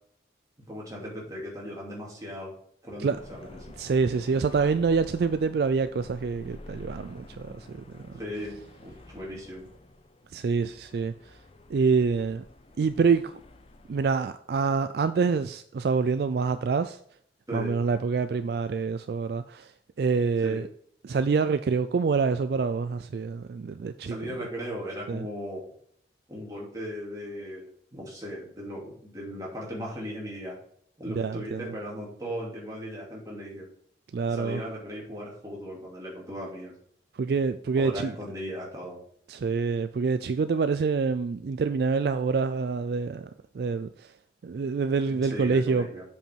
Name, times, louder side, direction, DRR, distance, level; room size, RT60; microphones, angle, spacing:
voice 1, 0.7-2.5 2.8-3.5 8.2-9.7 17.5-17.7 20.4-20.6 24.0-25.6 26.3-27.7 27.9-30.6 31.0-33.7 34.3-36.7 37.8-39.0 45.1-46.0, equal, 20° right, 2.8 m, -37 dB
sound 1, 3.1-14.0, left 2 dB, 30° left, 0.5 m, -49 dB
voice 2, 3.8-8.2 10.3-11.4 11.7-12.4 12.8-13.4 13.9-17.0 17.5-19.7 20.0-20.7 21.0-24.2 25.1-25.3 31.1-31.7 34.1-34.6 37.1-38.2 39.3-44.1 44.4-45.9, right 5 dB, 60° right, 0.3 m, -26 dB
7.5 x 5.4 x 4.5 m
head